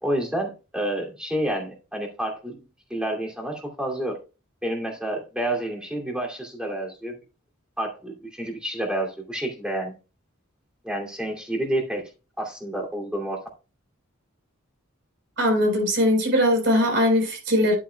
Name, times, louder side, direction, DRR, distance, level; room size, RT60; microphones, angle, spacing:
voice 1, 0.0-2.6 2.9-4.2 4.6-7.2 7.8-9.9 10.8-12.1 12.4-13.4, right 1 dB, 5° right, 2.5 m, -29 dB
voice 2, 15.4-17.7, equal, 60° right, 4.1 m, -20 dB
11.0 x 8.7 x 2.3 m
head